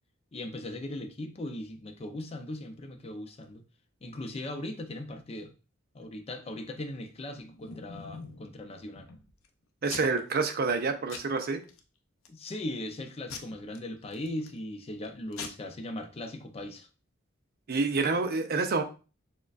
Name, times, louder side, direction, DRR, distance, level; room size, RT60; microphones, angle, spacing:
voice 1, 0.3-3.6 4.0-5.5 5.9-9.1 12.3-16.9, left 1 dB, 30° left, 0.5 m, -39 dB
Packing tape duct tape / Tearing, 7.1-8.5 9.0-9.5 9.9-10.3 10.6-10.8 11.1-11.8 12.3-12.6 13.3-14.6 15.0-15.1 15.3-15.5, left 5 dB, 80° left, 0.6 m, -43 dB
voice 2, 9.8-11.6 17.7-18.8, right 4 dB, 50° right, 0.5 m, -28 dB
6.3 x 2.2 x 2.4 m
head